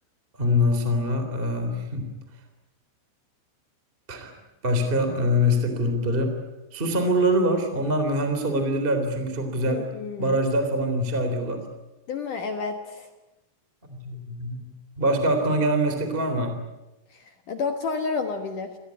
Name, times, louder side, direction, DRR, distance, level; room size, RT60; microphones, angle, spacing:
voice 1, 0.4-2.1 4.1-4.3 4.6-6.3 6.7-9.9 10.2-11.6 13.9-14.6 15.0-16.6, equal, 15° right, 6 dB, 2.9 m, -24 dB
voice 2, 9.7-10.4 12.1-13.1 17.1-18.8, left 4 dB, 60° left, 6 dB, 2.3 m, -30 dB
28.5 x 18.5 x 9.7 m, 1.0 s
omnidirectional pair, 5.4 m